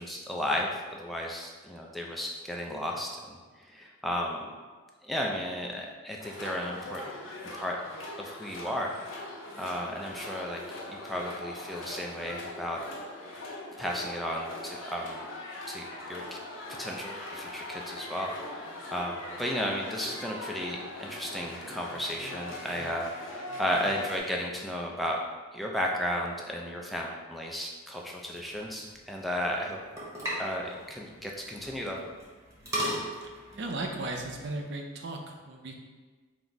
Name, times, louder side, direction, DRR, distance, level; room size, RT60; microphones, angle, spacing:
voice 1, 0.0-4.4 5.0-7.1 7.6-7.8 8.2-9.0 9.6-10.6 10.9-12.8 13.8-15.2 15.7-16.4 16.8-25.2 25.5-29.8 30.4-32.0, equal, ahead, -1 dB, 0.3 m, -34 dB
sound 1, 6.2-24.2, left 2 dB, 70° left, 0.9 m, -41 dB
sound 2, 28.2-34.6, equal, 15° right, 0.8 m, -39 dB
voice 2, 33.2-35.8, right 2 dB, 60° right, 3 dB, 0.5 m, -36 dB
3.9 x 2.0 x 4.4 m, 1.4 s
head